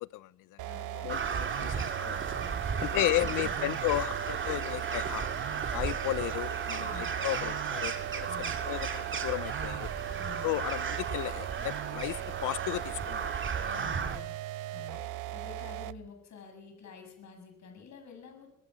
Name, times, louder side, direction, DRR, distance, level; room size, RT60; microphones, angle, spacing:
voice 1, 0.0-0.7 1.0-2.4 2.8-5.3 5.7-9.9 10.4-13.3 13.7-13.8 14.9-15.1, left 17 dB, 90° left, 0.7 m, -34 dB
voice 2, 0.6-1.3 2.3-3.8 6.8-7.1 8.2-8.6 10.2-10.5 13.6-14.3 14.7-15.0 15.3-18.5, left 6 dB, 65° left, 7.5 m, -49 dB
sound 1, 0.6-16.1, right 15 dB, 90° right, 0.8 m, -39 dB
Crow, 1.1-14.2, right 6 dB, 40° right, 2.5 m, -35 dB
22.5 x 21.0 x 6.9 m
cardioid pair, 90°, 30 cm